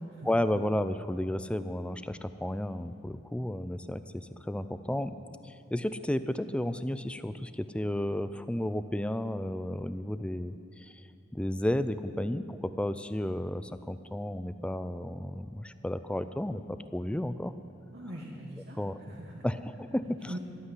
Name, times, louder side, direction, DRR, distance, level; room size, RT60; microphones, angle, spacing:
voice 1, 0.2-5.1 5.4-11.0 11.3-17.5 18.8-19.0 19.4-20.3, left 1 dB, 5° left, 12 dB, 0.3 m, -32 dB
voice 2, 17.9-19.4 20.2-20.4, right 1 dB, 55° right, -2 dB, 1.4 m, -42 dB
13.0 x 8.2 x 9.8 m, 2.6 s
head